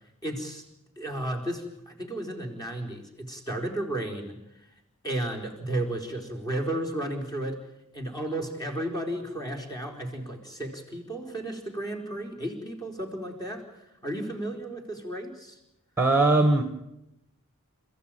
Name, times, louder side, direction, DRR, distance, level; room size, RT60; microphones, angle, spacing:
voice 1, 0.2-0.6 1.0-4.4 5.0-7.6 7.9-13.6 14.0-15.6, right 1 dB, 20° left, 2 dB, 4.3 m, -33 dB
voice 2, 16.0-16.6, right 2 dB, 10° right, 7 dB, 1.6 m, -20 dB
29.5 x 15.5 x 9.1 m, 0.89 s
head